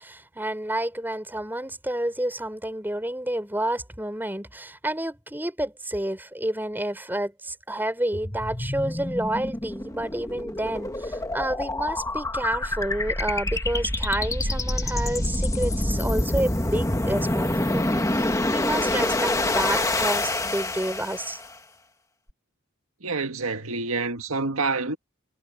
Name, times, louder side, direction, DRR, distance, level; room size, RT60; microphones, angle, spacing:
voice 1, 0.0-21.4, right 1 dB, 10° right, 3.9 m, -29 dB
sound 1, 8.1-21.5, left 1 dB, 15° left, 1.3 m, -27 dB
voice 2, 23.0-25.0, right 3 dB, 80° right, 1.8 m, -27 dB
head